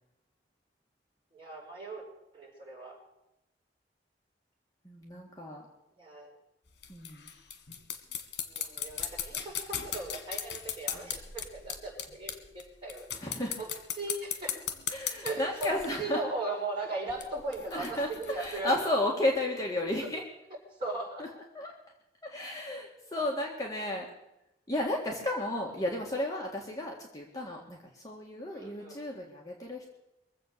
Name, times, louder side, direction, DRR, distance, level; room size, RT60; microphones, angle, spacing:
voice 1, 1.3-2.0 2.3-3.0 6.0-6.3 8.5-13.2 13.6-13.7 14.0-14.6 15.2-15.7 16.0-18.9 20.8-21.2 28.5-29.0, right 2 dB, 30° right, -4 dB, 5.5 m, -38 dB
voice 2, 4.8-5.6 6.9-7.3 13.2-13.6 14.9-16.2 17.7-20.2 21.2-21.3 21.5-21.7 22.2-24.1 24.7-29.9, left 1 dB, 20° left, -1 dB, 1.8 m, -33 dB
sound 1, 6.7-12.6 12.9-15.9 17.1-18.8, left 9 dB, 85° left, 1.7 m, -38 dB
23.0 x 7.8 x 6.7 m, 0.90 s
head